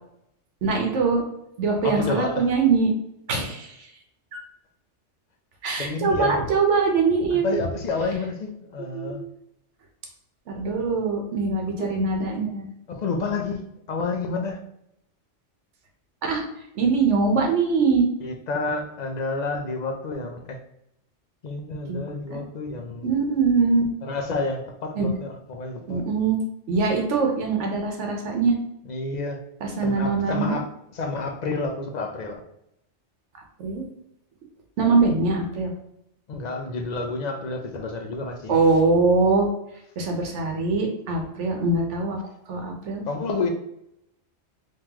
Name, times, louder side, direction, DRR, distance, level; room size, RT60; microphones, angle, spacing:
voice 1, 0.6-1.2 1.6-2.9 3.3-3.8 4.3-4.4 5.6-7.5 8.9-9.2 10.5-12.7 16.2-16.4 16.8-18.1 21.9-22.0 22.3-22.4 23.0-23.8 25.0-25.2 25.9-26.4 26.7-28.6 29.6-30.5 33.6-33.8 34.8-35.7 38.5-39.5 40.0-42.2 42.5-43.0, right 4 dB, 85° right, 2 dB, 1.2 m, -22 dB
voice 2, 1.8-2.4 3.4-3.5 5.8-6.3 7.3-9.2 11.8-11.9 12.9-13.6 13.9-14.6 18.2-20.6 21.4-23.1 24.0-26.0 28.8-29.4 29.8-30.7 30.9-32.4 36.3-38.6 43.1-43.5, left 3 dB, 50° left, 4 dB, 0.5 m, -29 dB
3.8 x 3.1 x 2.9 m, 0.78 s
omnidirectional pair, 1.2 m